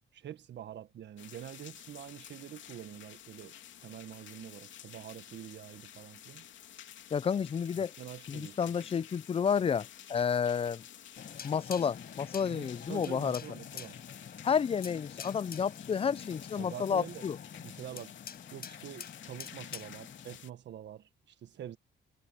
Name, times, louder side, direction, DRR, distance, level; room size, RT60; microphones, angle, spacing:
voice 1, 0.0-6.5 8.0-8.6 12.4-13.9 16.5-17.3 17.6-18.2 18.5-21.8, right 10 dB, 65° right, 1.5 m, -46 dB
sound 1, 1.2-20.5, left 10 dB, 70° left, 2.9 m, -51 dB
voice 2, 7.1-7.9 8.3-10.8 11.4-13.4 14.4-17.4, left 7 dB, 30° left, 0.4 m, -31 dB
sound 2, 11.2-20.4, left 7 dB, 50° left, 6.3 m, -47 dB
cardioid pair, 90°, 20 cm